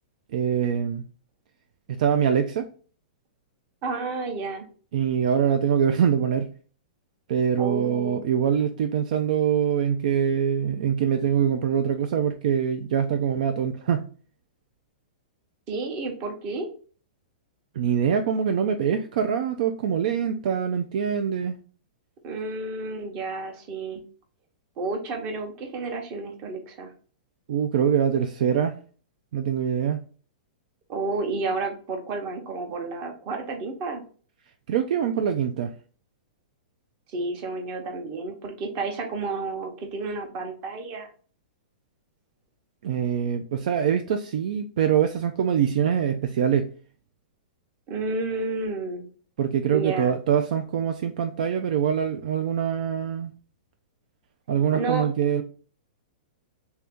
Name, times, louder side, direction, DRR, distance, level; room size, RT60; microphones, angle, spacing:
voice 1, 0.3-1.0 1.9-2.7 4.9-6.5 7.3-14.0 17.8-21.6 27.5-28.7 29.3-30.0 34.7-35.7 42.8-46.7 49.4-53.3 54.5-55.4, right 8 dB, 60° right, 0.4 m, -24 dB
voice 2, 3.8-4.7 7.6-8.2 15.7-16.7 22.2-24.0 24.8-26.9 30.9-34.0 37.1-41.1 47.9-49.1 49.7-50.1 54.7-55.1, right 3 dB, 35° right, 0.9 m, -31 dB
3.4 x 2.7 x 3.5 m
hypercardioid pair, 155°, 5 cm